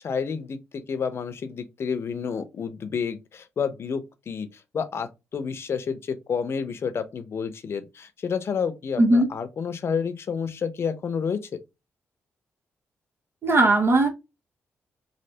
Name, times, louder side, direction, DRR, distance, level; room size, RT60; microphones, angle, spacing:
voice 1, 0.0-11.4, left 6 dB, 55° left, 0.6 m, -30 dB
voice 2, 13.4-14.1, right 2 dB, 50° right, 0.9 m, -18 dB
3.2 x 2.8 x 2.8 m
cardioid pair, 65°, 5 cm